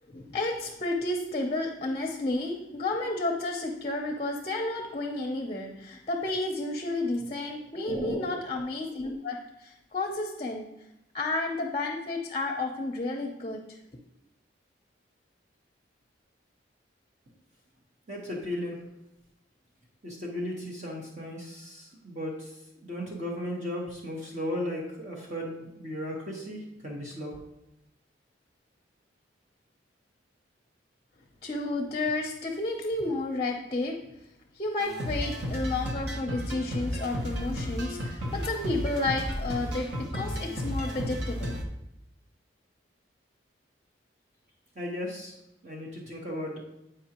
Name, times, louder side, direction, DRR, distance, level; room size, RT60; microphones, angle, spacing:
voice 1, 0.1-10.7 11.1-13.6 31.4-34.0 34.5-41.6, left 2 dB, 30° left, 2 dB, 0.6 m, -31 dB
voice 2, 7.8-8.2 18.1-18.8 20.0-22.5 22.8-27.4 44.7-45.4 45.6-46.6, left 1 dB, 35° right, -3 dB, 1.2 m, -35 dB
sound 1, 34.8-41.6, equal, 60° right, 1.0 m, -33 dB
9.2 x 5.0 x 2.9 m, 0.87 s
head